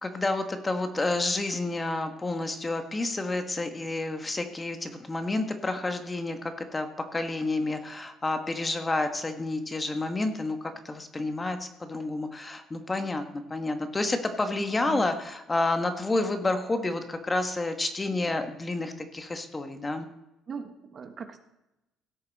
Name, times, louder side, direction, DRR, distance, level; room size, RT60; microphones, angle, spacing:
voice 1, 0.0-10.6 10.8-20.1, left 2 dB, 20° left, 7 dB, 1.4 m, -30 dB
voice 2, 20.5-21.4, right 6 dB, 45° right, 7 dB, 1.3 m, -39 dB
16.5 x 6.7 x 4.1 m, 0.92 s
supercardioid pair, 80°, 0 cm